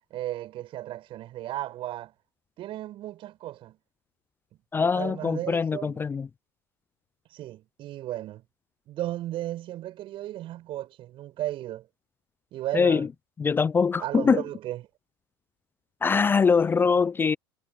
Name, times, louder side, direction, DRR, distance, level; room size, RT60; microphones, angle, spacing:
voice 1, 0.1-2.1 2.6-3.8 4.9-6.0 7.3-8.4 8.9-11.9 12.5-13.1 14.0-14.8, right 14 dB, 50° right, 7.4 m, -35 dB
voice 2, 4.7-6.3 12.7-13.1 13.4-14.4 16.0-17.4, left 5 dB, 20° left, 0.4 m, -23 dB
hypercardioid pair, 75°, 12 cm